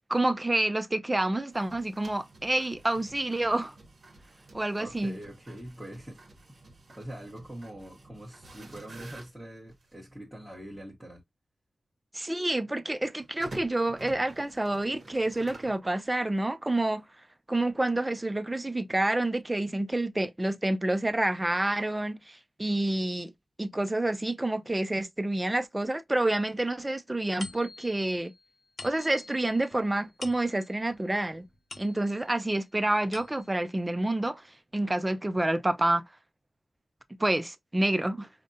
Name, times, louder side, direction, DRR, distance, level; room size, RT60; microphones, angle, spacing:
voice 1, 0.1-3.7 4.5-5.2 12.1-17.0 17.5-23.3 23.6-28.3 28.8-31.5 31.8-34.4 34.7-36.0 37.2-38.3, right 1 dB, 15° right, 0.4 m, -28 dB
sound 1, 1.5-10.0 10.7-10.8 13.2-15.8, right 2 dB, 50° right, 1.0 m, -50 dB
voice 2, 4.8-6.2 6.5-6.6 6.9-11.2, right 1 dB, ahead, 1.1 m, -43 dB
sound 2, 27.4-32.4 32.8-33.7, left 3 dB, 55° left, 0.7 m, -47 dB
5.0 x 2.1 x 2.6 m
wide cardioid pair, 135°, 0 cm